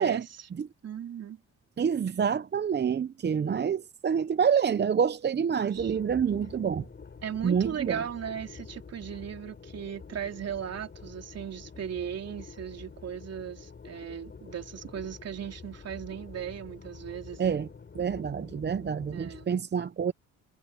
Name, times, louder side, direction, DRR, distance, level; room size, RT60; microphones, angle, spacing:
voice 1, 0.0-0.5 0.8-1.4 5.5-6.0 7.2-17.6 19.1-19.6, right 9 dB, 55° right, 3.2 m, -37 dB
voice 2, 1.8-6.8 7.4-8.0 17.4-17.7 17.9-20.1, right 7 dB, 35° right, 0.8 m, -27 dB
sound 1, 5.7-19.5, left 5 dB, 35° left, 7.7 m, -47 dB
cardioid pair, 90°, 30 cm